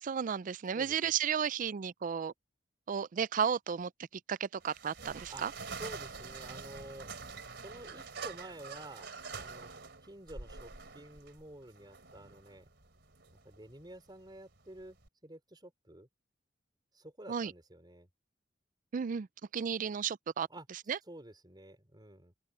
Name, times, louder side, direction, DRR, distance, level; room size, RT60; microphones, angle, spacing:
voice 1, 0.0-2.3 2.9-3.9 4.3-5.5 17.3-17.5 18.9-19.3 19.5-21.0, right 7 dB, 45° right, 0.4 m, -33 dB
voice 2, 0.7-1.1 5.3-5.4 5.8-7.1 7.5-9.1 9.3-9.7 10.0-12.7 13.4-15.0 15.2-16.1 16.9-18.1 20.5-20.7 21.1-22.3, right 1 dB, 25° right, 4.7 m, -50 dB
sound 1, 4.6-15.1, right 4 dB, 70° right, 3.5 m, -46 dB
open air
head